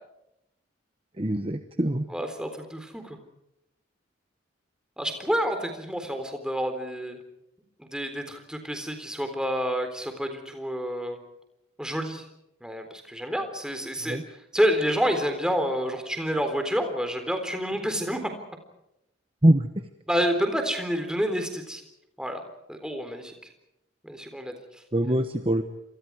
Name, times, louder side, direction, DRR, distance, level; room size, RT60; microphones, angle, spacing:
voice 1, 1.2-2.1 14.1-14.2 19.4-19.7 24.9-25.6, right 1 dB, 25° right, 7 dB, 1.1 m, -23 dB
voice 2, 2.1-3.2 5.0-7.2 7.8-11.2 11.8-12.2 12.6-18.3 20.1-21.8 22.2-22.4 22.7-23.3 24.0-24.8, equal, 5° right, 6 dB, 3.8 m, -29 dB
29.0 x 27.0 x 4.8 m, 0.84 s
head